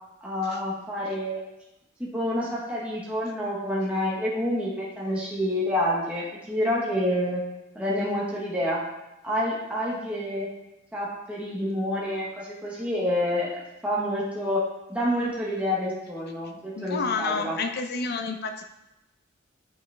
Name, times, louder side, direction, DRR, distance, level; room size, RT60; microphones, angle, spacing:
voice 1, 0.2-1.4 2.0-7.4 7.7-8.8 9.2-10.5 10.9-13.5 13.8-14.6 14.9-17.6, left 1 dB, 5° right, -6 dB, 1.3 m, -28 dB
voice 2, 16.8-18.6, left 4 dB, 55° left, 6 dB, 0.6 m, -29 dB
7.9 x 5.3 x 3.5 m, 0.94 s
head